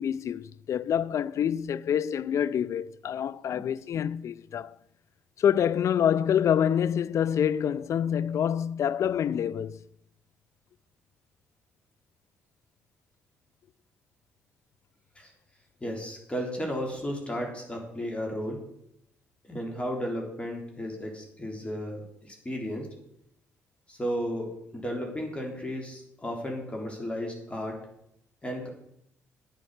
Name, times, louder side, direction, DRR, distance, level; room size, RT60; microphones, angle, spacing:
voice 1, 0.0-4.7 5.4-9.8, left 9 dB, 60° left, 0.5 m, -26 dB
voice 2, 15.8-18.6 19.4-22.9 23.9-27.8 28.4-28.7, equal, 20° left, 3.6 m, -34 dB
9.4 x 9.2 x 6.5 m
hypercardioid pair, 50°, 6 cm